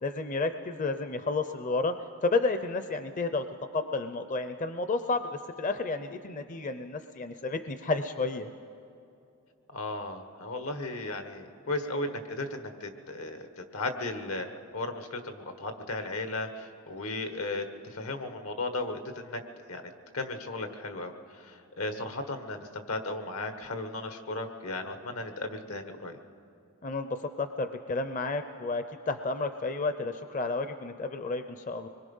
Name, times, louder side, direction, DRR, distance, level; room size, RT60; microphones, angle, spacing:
voice 1, 0.0-2.0 2.2-3.5 3.7-8.5 26.8-31.9, left 3 dB, 35° left, 9 dB, 0.6 m, -31 dB
voice 2, 9.7-19.4 19.7-26.2, left 2 dB, 80° left, 7 dB, 1.6 m, -36 dB
25.0 x 22.0 x 5.5 m, 2.7 s
head